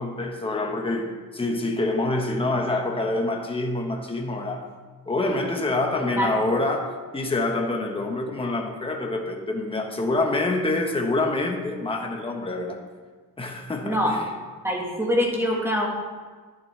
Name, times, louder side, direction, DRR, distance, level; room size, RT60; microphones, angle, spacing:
voice 1, 0.0-4.7 5.1-12.9 13.4-14.0, left 2 dB, 15° left, 2 dB, 1.1 m, -26 dB
voice 2, 6.2-6.5 13.8-14.2 14.6-15.9, equal, 5° right, -1 dB, 1.6 m, -24 dB
11.0 x 10.5 x 3.3 m, 1.5 s
cardioid pair, 150°, 37 cm